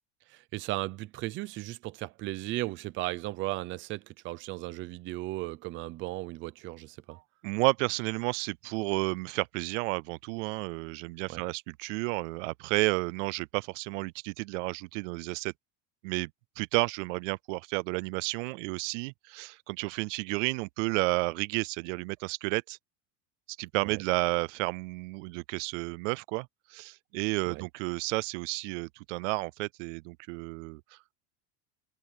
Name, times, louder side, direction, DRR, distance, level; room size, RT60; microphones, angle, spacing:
voice 1, 0.3-7.2 11.3-11.4 23.8-24.0 27.5-27.7, right 18 dB, 30° right, 0.6 m, -36 dB
voice 2, 7.1-15.5 16.0-16.3 16.6-22.8 23.6-31.0, right 25 dB, 80° right, 0.5 m, -32 dB
cardioid pair, 170°, 37 cm